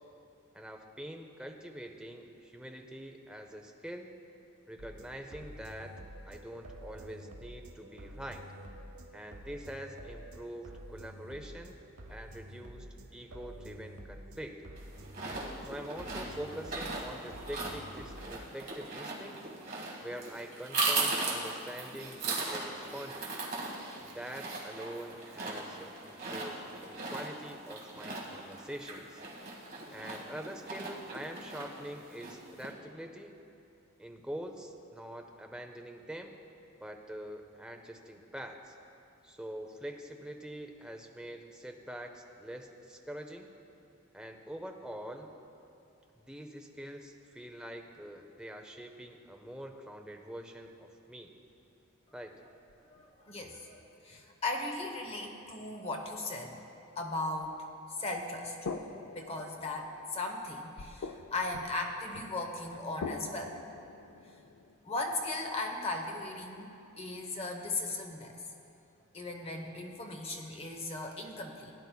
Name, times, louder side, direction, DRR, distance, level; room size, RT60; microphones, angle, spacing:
voice 1, 0.5-4.1 4.7-6.0 6.3-8.4 9.1-11.8 12.1-14.6 15.6-19.4 20.0-23.3 23.9-29.2 29.9-33.3 34.0-36.4 36.8-38.7 39.2-43.5 44.1-45.3 46.1-51.3 52.1-52.4, equal, 5° right, 4 dB, 0.5 m, -44 dB
sound 1, 4.8-18.5, right 1 dB, 85° right, 0.9 m, -49 dB
sound 2, 14.8-32.7, right 3 dB, 45° right, 1.5 m, -38 dB
sound 3, 52.7-53.1 57.4-57.5 58.7-64.8, left 4 dB, 75° left, 0.4 m, -45 dB
voice 2, 52.9-56.6 57.0-57.6 57.9-58.6 59.1-63.6 64.8-68.4 69.1-71.7, left 2 dB, 30° left, 2 dB, 0.8 m, -37 dB
17.0 x 9.5 x 2.2 m, 2.6 s
head